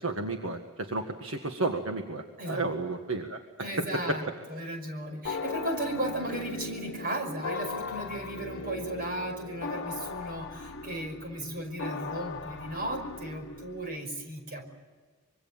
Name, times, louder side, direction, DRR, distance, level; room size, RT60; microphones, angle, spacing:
voice 1, 0.0-4.2, right 2 dB, 65° right, 4 dB, 1.8 m, -32 dB
voice 2, 3.6-14.6, right 1 dB, 40° right, 4 dB, 5.5 m, -35 dB
sound 1, 5.2-14.0, left 4 dB, 55° left, 1.2 m, -38 dB
25.5 x 23.0 x 7.5 m, 1.4 s
head